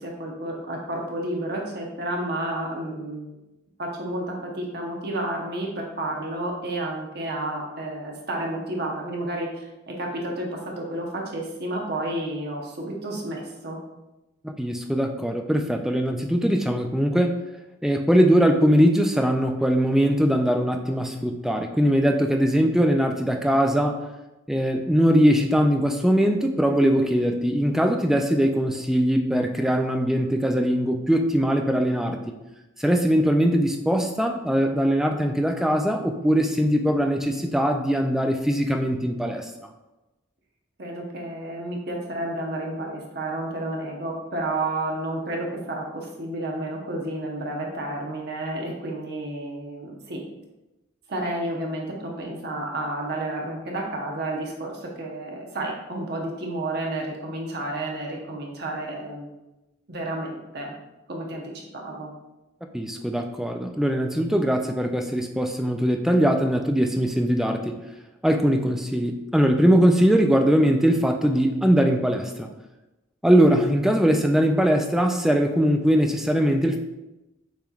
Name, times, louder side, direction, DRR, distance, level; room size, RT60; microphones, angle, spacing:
voice 1, 0.0-3.4 3.8-13.8 40.8-50.2 51.1-59.3 59.9-60.7 61.1-62.1, right 1 dB, 55° right, 0 dB, 0.9 m, -31 dB
voice 2, 14.4-17.3 17.8-24.0 24.5-32.2 32.8-39.5 62.7-67.7 68.2-72.5 73.2-76.8, equal, ahead, 4 dB, 0.3 m, -21 dB
6.8 x 3.2 x 2.4 m, 1.0 s
head